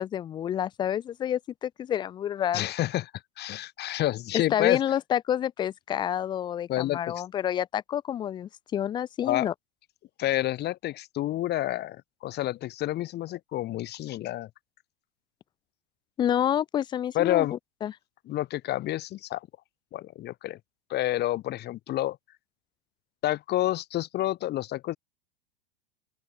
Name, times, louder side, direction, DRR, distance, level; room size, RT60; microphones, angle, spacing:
voice 1, 0.0-2.7 4.5-9.5 16.2-17.9, left 10 dB, 15° left, 0.4 m, -28 dB
voice 2, 2.5-3.1 3.4-4.8 6.7-7.0 9.2-9.5 10.2-14.5 17.1-17.6 18.3-19.5 19.9-20.6 20.9-22.2 23.2-25.0, left 14 dB, 35° left, 3.3 m, -29 dB
open air
hypercardioid pair, 100°, 29 cm